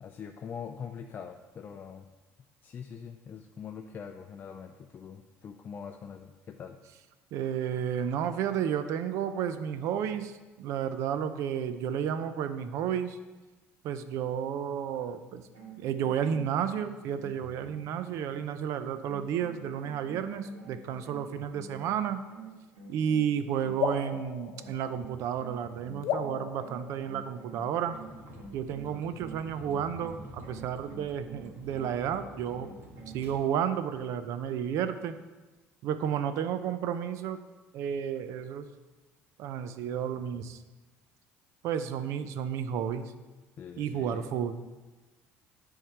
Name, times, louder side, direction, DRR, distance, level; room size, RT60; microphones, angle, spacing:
voice 1, 0.0-2.1 2.6-6.8 43.6-44.3, left 7 dB, 35° left, 4 dB, 0.4 m, -43 dB
voice 2, 7.3-13.2 13.8-15.5 15.8-22.2 22.9-28.0 28.5-32.7 33.1-35.2 35.8-37.4 37.7-38.7 39.4-40.6 41.6-43.1 43.8-44.5, right 8 dB, 65° right, 11 dB, 0.5 m, -32 dB
sound 1, 15.5-24.2 24.6-33.3, right 4 dB, 90° right, 2.0 m, -49 dB
sound 2, 23.8-25.4 26.0-27.7, left 8 dB, 65° left, 0.7 m, -36 dB
Vehicle, 27.9-33.4, equal, 40° right, 1.6 m, -49 dB
10.0 x 3.7 x 4.6 m, 1.2 s
cardioid pair, 125°, 5 cm